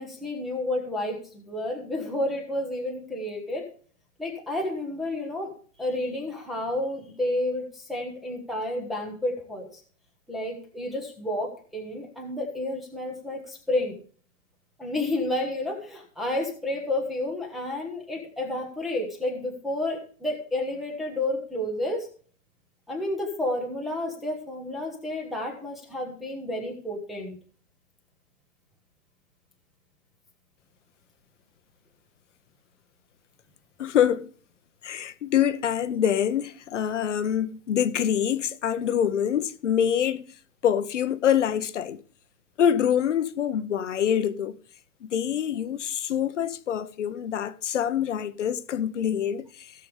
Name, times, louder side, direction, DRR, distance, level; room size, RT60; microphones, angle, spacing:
voice 1, 0.0-3.6 4.2-5.5 5.8-9.7 10.3-13.9 14.8-22.1 22.9-27.4, left 1 dB, ahead, 1.1 m, -30 dB
voice 2, 33.8-34.3 34.8-40.3 40.6-42.0 42.6-44.6 45.0-49.7, left 9 dB, 60° left, 1.1 m, -25 dB
17.0 x 6.9 x 3.3 m
hypercardioid pair, 165°, 41 cm